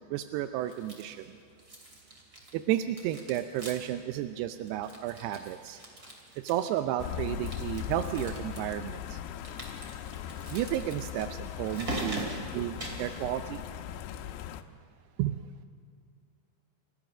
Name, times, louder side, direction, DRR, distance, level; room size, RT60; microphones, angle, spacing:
voice 1, 0.1-1.3 2.5-5.8 6.4-9.2 10.5-13.6 15.2-15.4, right 12 dB, 80° right, 9 dB, 2.4 m, -32 dB
sound 1, 0.7-1.3 1.6-2.6 2.9-4.0 4.3-4.4 4.7-6.9 7.3-8.6 9.4-13.3, right 1 dB, 25° right, 2.6 m, -42 dB
sound 2, 7.0-14.6, left 10 dB, 80° left, 2.8 m, -39 dB
30.0 x 14.0 x 6.2 m, 2.4 s
omnidirectional pair, 5.2 m